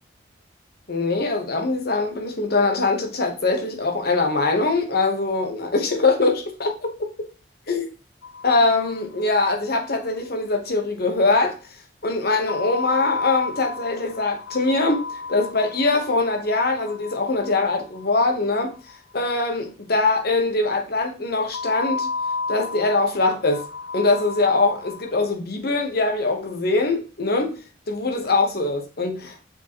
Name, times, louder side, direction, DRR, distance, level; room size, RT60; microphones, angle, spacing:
voice 1, 0.9-6.9 7.7-7.9 8.4-11.6 12.0-18.7 19.1-22.1 22.5-23.7 23.9-27.6 27.9-29.5, left 3 dB, 55° left, 1.1 m, -22 dB
sound 1, 8.2-9.2 9.5-9.6 9.8-9.9 12.5-18.6 21.5-25.1, left 4 dB, 75° left, 0.5 m, -32 dB
6.5 x 4.9 x 3.0 m
head